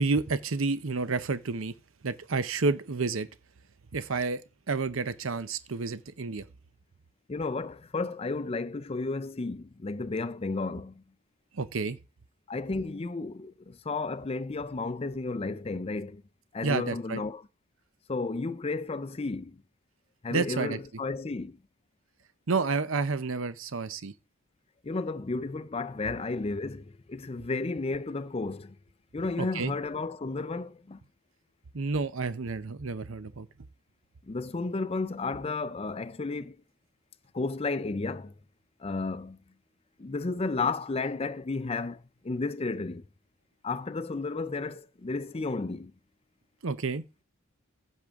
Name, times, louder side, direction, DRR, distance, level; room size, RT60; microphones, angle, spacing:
voice 1, 0.0-1.7 2.0-3.3 3.9-6.4 11.5-12.0 16.6-17.2 20.3-20.8 22.5-24.1 29.4-29.7 31.7-33.5 46.6-47.0, right 4 dB, 70° right, 0.7 m, -30 dB
voice 2, 7.3-11.0 12.5-16.2 16.5-17.4 18.1-19.6 20.2-21.6 24.8-28.7 29.1-31.0 34.3-36.6 37.3-38.3 38.8-39.4 40.0-43.0 43.6-45.9, left 3 dB, 30° left, 0.5 m, -33 dB
15.5 x 6.2 x 3.6 m
head